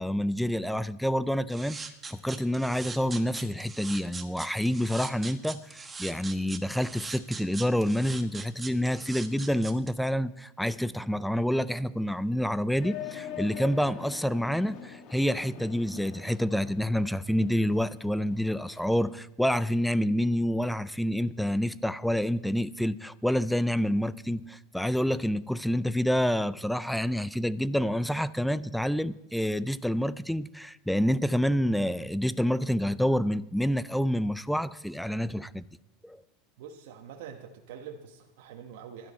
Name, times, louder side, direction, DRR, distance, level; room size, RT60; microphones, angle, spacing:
voice 1, 0.0-1.8 2.1-35.6 36.0-36.2, equal, ahead, 0.4 m, -28 dB
sound 1, 1.5-9.9, right 4 dB, 15° right, 1.2 m, -41 dB
sound 2, 12.8-19.1, left 8 dB, 45° left, 2.1 m, -44 dB
voice 2, 36.6-39.1, right 7 dB, 70° right, 1.3 m, -45 dB
16.0 x 12.0 x 4.3 m
supercardioid pair, 125°, 0 cm